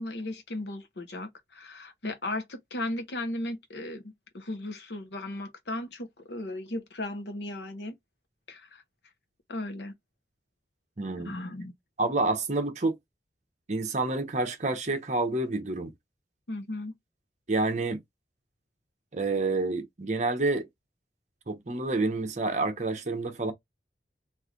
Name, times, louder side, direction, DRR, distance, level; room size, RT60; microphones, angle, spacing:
voice 1, 0.0-7.9 8.5-8.8 9.5-9.9 11.2-11.7 16.5-16.9, left 1 dB, 75° left, 0.9 m, -36 dB
voice 2, 11.0-11.3 12.0-12.9 13.7-15.9 17.5-18.0 19.1-20.7 21.5-23.5, right 2 dB, 40° right, 0.8 m, -28 dB
3.2 x 2.5 x 3.7 m
head